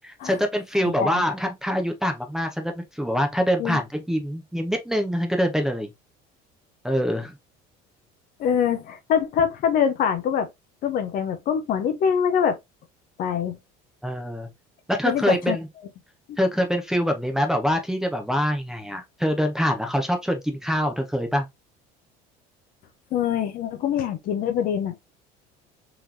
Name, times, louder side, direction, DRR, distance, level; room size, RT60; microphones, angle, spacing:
voice 1, 0.0-5.9 6.8-7.4 14.0-14.5 14.9-15.7 16.4-21.5, equal, 5° right, 0.7 m, -24 dB
voice 2, 0.8-1.2 3.6-3.8 8.4-10.5 10.8-12.6 13.2-13.6 15.0-15.6 16.3-16.4 23.1-25.0, left 8 dB, 50° left, 0.8 m, -24 dB
4.0 x 3.1 x 2.7 m
cardioid pair, 140°, 18 cm